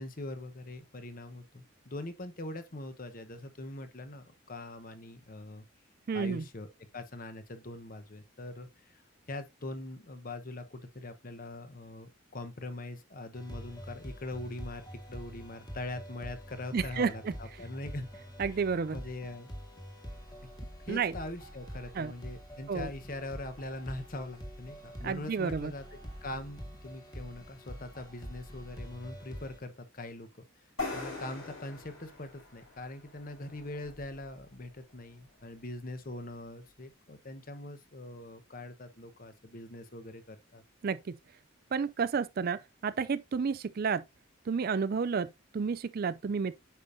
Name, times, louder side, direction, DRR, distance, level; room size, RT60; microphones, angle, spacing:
voice 1, 0.0-5.6 6.1-6.7 6.9-9.0 9.3-18.1 18.5-19.5 20.8-30.4 30.9-40.6, left 2 dB, 45° left, 1.0 m, -42 dB
voice 2, 6.1-6.4 16.7-17.3 18.4-19.0 20.9-21.1 21.9-22.1 22.7-22.9 25.0-25.7 40.8-41.2 41.7-44.0 44.5-46.5, right 5 dB, 45° right, 0.4 m, -31 dB
sound 1, 13.3-29.6, equal, 20° left, 1.7 m, -46 dB
sound 2, 30.8-34.4, left 3 dB, 85° left, 5.0 m, -41 dB
9.1 x 5.2 x 2.7 m
head